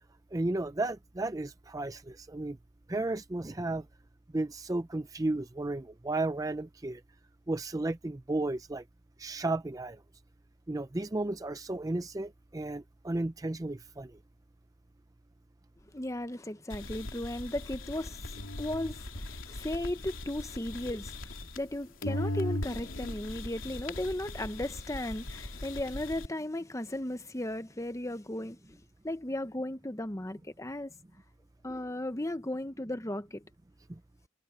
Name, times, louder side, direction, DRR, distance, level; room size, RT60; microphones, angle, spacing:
voice 1, 0.3-2.6 2.9-3.8 4.3-7.0 7.5-8.8 9.2-10.0 10.7-14.1, right 2 dB, 15° right, 0.5 m, -33 dB
voice 2, 15.9-30.9 31.6-33.4, left 1 dB, 15° left, 0.8 m, -36 dB
sound 1, 16.7-21.7 22.0-26.3, left 1 dB, 90° left, 3.0 m, -39 dB
head